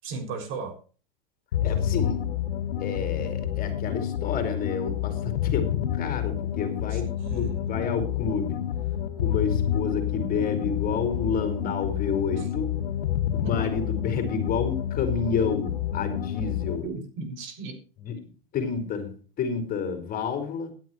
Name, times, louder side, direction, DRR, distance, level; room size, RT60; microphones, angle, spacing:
voice 1, 0.0-0.8 6.9-7.8 12.4-12.5 13.4-13.5 16.8-17.8, right 4 dB, 45° right, 6.7 m, -36 dB
sound 1, 1.5-16.9, left 10 dB, 80° left, 2.4 m, -29 dB
voice 2, 1.6-2.3 2.8-8.6 9.2-12.8 13.3-16.9 18.0-18.2 18.5-19.1 19.4-20.7, left 6 dB, 30° left, 5.4 m, -30 dB
16.5 x 12.5 x 3.2 m
hypercardioid pair, 125°, 29 cm